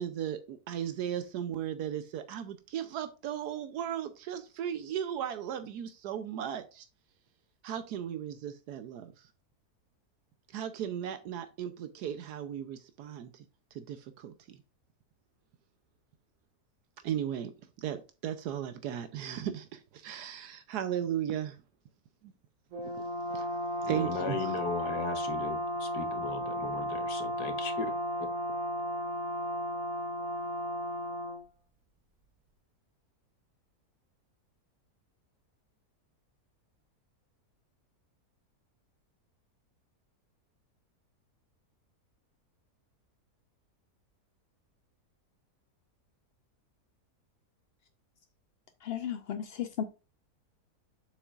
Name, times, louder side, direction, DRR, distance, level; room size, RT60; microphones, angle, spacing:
voice 1, 0.0-6.9 7.6-9.3 10.5-13.4 13.7-14.6 17.0-21.6 22.8-22.9 23.3-24.5, right 10 dB, 80° right, 1.2 m, -36 dB
Brass instrument, 22.7-31.4, equal, 60° right, 2.0 m, -34 dB
voice 2, 23.9-27.9, left 6 dB, 85° left, 1.7 m, -37 dB
voice 3, 48.8-49.8, left 9 dB, 60° left, 0.6 m, -34 dB
7.7 x 6.4 x 2.4 m
omnidirectional pair, 1.7 m